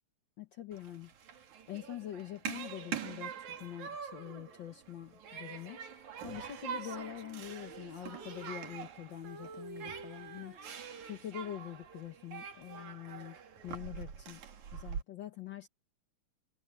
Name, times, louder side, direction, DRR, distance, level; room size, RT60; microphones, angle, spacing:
voice 1, 0.4-1.1 1.7-10.6 11.0-13.4 13.6-14.4 14.7-15.7, left 12 dB, 80° left, 1.0 m, -45 dB
Human group actions, 0.7-15.0, right 8 dB, 75° right, 3.5 m, -45 dB
Female singing, 6.7-9.0 9.2-11.3 11.8-12.1, right 3 dB, 40° right, 5.3 m, -51 dB
omnidirectional pair, 3.4 m